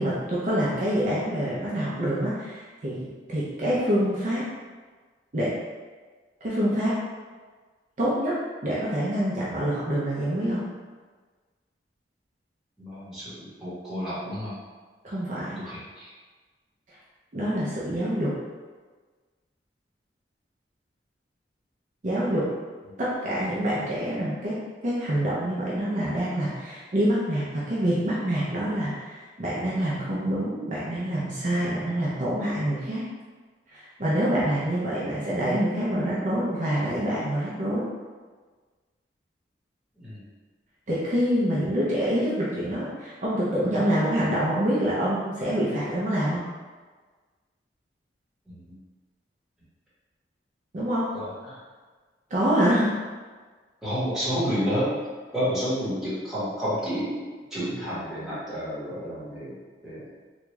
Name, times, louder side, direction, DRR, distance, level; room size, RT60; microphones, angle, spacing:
voice 1, 0.0-4.4 5.3-5.5 6.4-7.0 8.0-10.6 15.0-15.6 16.9-17.0 17.3-18.3 22.0-22.5 23.0-24.6 24.8-33.0 33.7-37.9 40.9-46.4 50.7-51.1 52.3-52.9, equal, 45° right, -8 dB, 0.6 m, -26 dB
voice 2, 12.8-14.6 15.3-16.1 34.4-34.5 40.0-40.2 48.4-48.7 51.1-51.6 53.8-55.0 55.3-60.1, equal, 5° right, -11 dB, 1.3 m, -30 dB
3.5 x 2.4 x 3.1 m, 1.4 s
head